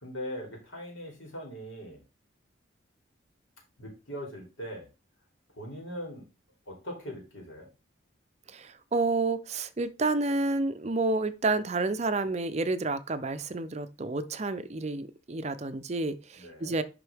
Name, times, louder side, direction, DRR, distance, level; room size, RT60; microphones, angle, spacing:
voice 1, 0.0-2.0 3.8-4.9 5.5-6.3 6.7-7.7 16.4-16.8, equal, 80° left, 3.1 m, -40 dB
voice 2, 8.5-16.8, right 3 dB, 35° right, 0.5 m, -30 dB
11.0 x 3.8 x 3.4 m
head